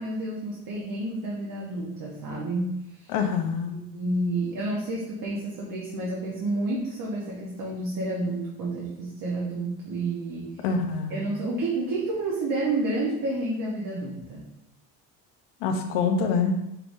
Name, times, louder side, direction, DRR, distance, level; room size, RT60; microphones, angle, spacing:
voice 1, 0.0-3.1 3.6-10.6 11.1-14.5, right 2 dB, 55° right, -4 dB, 1.1 m, -30 dB
voice 2, 3.1-3.7 10.6-11.2 15.6-16.6, left 5 dB, 85° left, 4 dB, 0.8 m, -25 dB
5.8 x 3.4 x 2.6 m, 0.83 s
cardioid pair, 125°, 39 cm